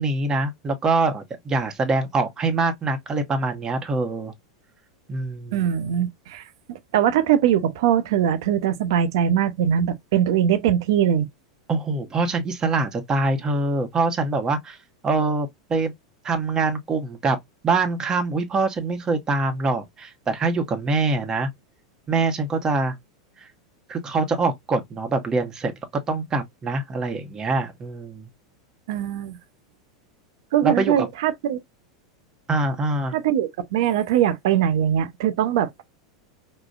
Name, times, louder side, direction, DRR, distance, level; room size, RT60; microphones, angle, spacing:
voice 1, 0.0-4.3 5.1-5.7 11.7-14.8 15.0-15.9 16.2-17.4 17.6-21.5 22.1-22.9 23.4-23.5 23.9-25.7 26.1-28.3 30.6-31.1 32.5-33.2, right 3 dB, 25° right, 1.0 m, -24 dB
voice 2, 5.5-6.4 6.7-11.3 28.9-29.4 30.5-31.6 33.1-35.8, right 10 dB, 60° right, 0.7 m, -21 dB
4.9 x 2.2 x 2.3 m
figure-of-eight pair, 90°, 3 cm